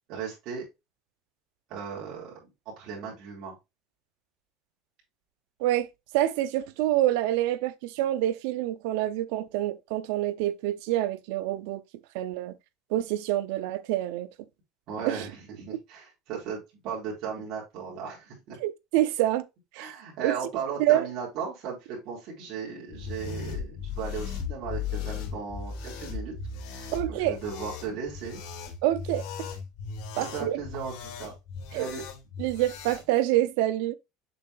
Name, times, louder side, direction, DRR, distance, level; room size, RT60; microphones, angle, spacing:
voice 1, 0.1-0.6 1.7-2.4 2.8-3.5 14.9-18.6 19.8-26.3 26.7-28.4 30.2-31.3 31.7-32.0, right 6 dB, 55° right, 3.9 m, -36 dB
voice 2, 6.1-11.8 12.1-12.6 12.9-14.3 15.0-15.2 15.7-15.8 18.6-19.4 19.7-19.9 20.2-20.3 20.8-21.1 26.9-27.4 28.8-29.2 30.2-30.6 31.7-31.9 32.4-33.9, right 14 dB, 80° right, 0.8 m, -26 dB
sound 1, 22.9-33.0, left 6 dB, 65° left, 2.3 m, -37 dB
7.2 x 5.4 x 2.4 m
cardioid pair, 140°, 0 cm